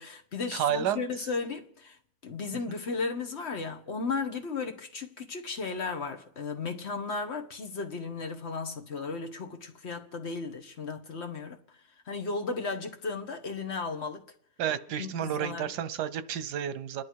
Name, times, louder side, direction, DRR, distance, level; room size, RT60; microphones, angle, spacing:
voice 1, 0.0-2.0 2.2-11.6 12.1-14.2 15.0-15.7, left 4 dB, 45° left, 1.4 m, -35 dB
voice 2, 0.5-1.0 2.7-2.8 14.6-17.0, right 10 dB, 90° right, 1.4 m, -31 dB
29.0 x 11.0 x 4.6 m
omnidirectional pair, 1.7 m